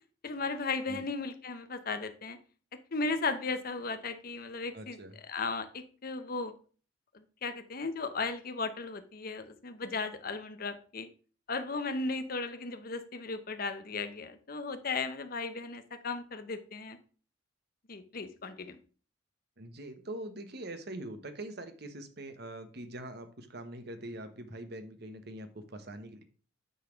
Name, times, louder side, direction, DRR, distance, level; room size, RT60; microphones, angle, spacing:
voice 1, 0.2-2.4 2.9-5.0 5.3-6.5 7.1-11.1 11.5-17.0 17.9-18.8, left 3 dB, 50° left, 9 dB, 0.8 m, -36 dB
voice 2, 4.7-5.2 19.6-26.2, right 1 dB, 55° right, 8 dB, 1.1 m, -43 dB
9.2 x 4.1 x 5.1 m, 0.40 s
head